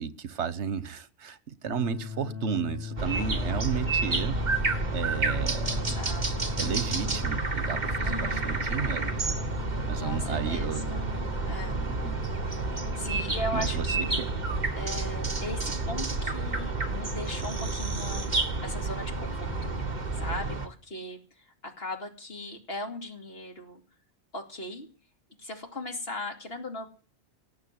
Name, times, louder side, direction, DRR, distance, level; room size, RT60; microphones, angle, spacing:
voice 1, 0.0-4.5 4.9-6.0 6.6-9.2 9.9-11.0 11.8-12.3 13.5-13.8 14.2-14.3, right 7 dB, 80° right, 1.3 m, -33 dB
sound 1, 1.7-14.6, left 6 dB, 15° right, 1.5 m, -40 dB
sound 2, 3.0-20.7, right 3 dB, 40° right, 1.7 m, -30 dB
voice 2, 5.8-6.2 6.6-6.9 8.0-8.6 9.6-11.2 11.5-11.8 13.0-14.2 14.7-19.7 20.1-23.8 24.3-24.9 25.4-26.9, left 1 dB, 60° left, 2.8 m, -38 dB
18.5 x 6.6 x 9.5 m
omnidirectional pair, 1.1 m